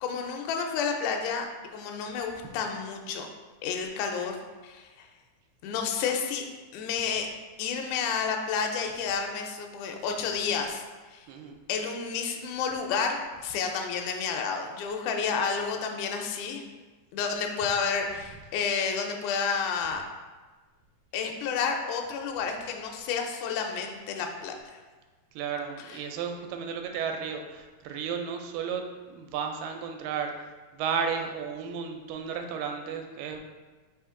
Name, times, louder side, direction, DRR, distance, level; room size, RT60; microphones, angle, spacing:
voice 1, 0.0-1.5 1.7-3.3 3.6-4.4 4.6-5.1 5.6-6.4 6.7-7.3 7.6-10.8 11.1-11.3 11.7-16.6 17.1-20.0 21.1-24.8 25.8-26.0, left 6 dB, 80° left, 3 dB, 1.8 m, -30 dB
voice 2, 11.3-11.6 25.4-30.5 30.7-33.4, right 6 dB, 85° right, 4 dB, 2.1 m, -33 dB
4.9 x 2.9 x 3.6 m, 1.3 s
omnidirectional pair, 3.8 m